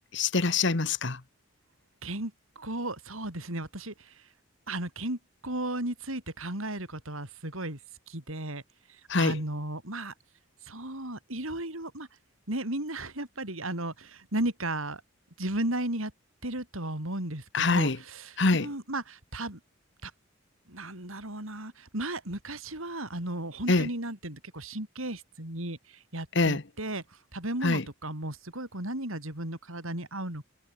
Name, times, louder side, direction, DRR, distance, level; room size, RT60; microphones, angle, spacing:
voice 1, 0.1-1.2 9.1-9.4 17.5-18.0 18.4-18.7 23.7-23.9 26.3-26.6 27.6-27.8, left 3 dB, 55° left, 1.3 m, -24 dB
voice 2, 2.0-4.2 4.7-7.8 8.1-8.6 8.9-10.1 10.6-12.1 12.5-15.0 15.4-16.1 16.4-19.6 20.0-20.1 20.7-27.0 27.3-30.5, right 1 dB, 75° right, 5.7 m, -35 dB
head